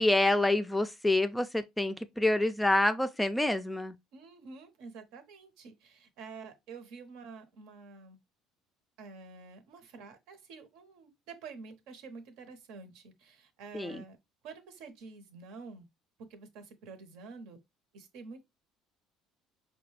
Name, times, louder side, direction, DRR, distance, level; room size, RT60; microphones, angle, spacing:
voice 1, 0.0-3.9 13.7-14.0, left 2 dB, 5° left, 0.3 m, -27 dB
voice 2, 4.1-8.2 9.0-14.2 14.4-15.9 16.2-17.6 17.9-18.4, right 4 dB, 75° right, 0.9 m, -48 dB
4.9 x 2.2 x 3.2 m
cardioid pair, 130°, 0 cm